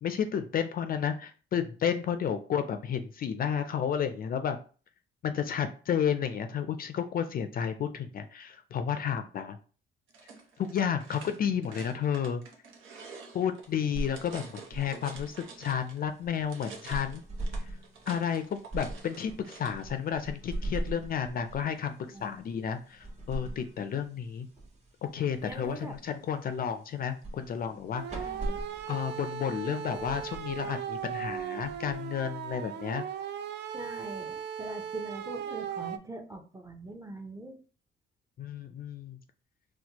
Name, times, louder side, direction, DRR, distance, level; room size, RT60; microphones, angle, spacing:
voice 1, 0.0-4.6 5.2-9.6 10.6-12.4 13.3-17.2 18.1-24.5 25.1-28.3 28.9-33.0 38.4-39.2, left 8 dB, 50° left, 9 dB, 0.4 m, -32 dB
sound 1, 10.1-16.0 16.3-19.8, right 5 dB, 85° right, 0.8 m, -48 dB
sound 2, 13.6-32.5, right 1 dB, 35° right, 1.2 m, -42 dB
voice 2, 25.4-25.9 28.1-28.6 33.7-37.6, right 2 dB, 15° right, 4 dB, 0.6 m, -42 dB
sound 3, 27.9-36.0, right 9 dB, 60° right, 0.4 m, -38 dB
4.2 x 2.2 x 2.9 m, 0.39 s
cardioid pair, 90°, 20 cm